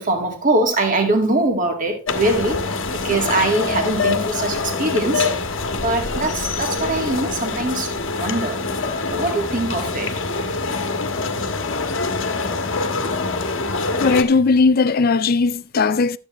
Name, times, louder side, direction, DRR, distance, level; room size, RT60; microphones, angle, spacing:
voice 1, 0.0-2.8 3.0-5.4 5.7-7.9 8.2-8.6 9.1-10.1, right 2 dB, 40° right, 1.9 m, -22 dB
sound 1, 2.1-14.2, left 3 dB, 65° left, 1.2 m, -24 dB
voice 2, 14.0-16.2, left 4 dB, 45° left, 0.4 m, -17 dB
12.0 x 8.2 x 3.1 m
head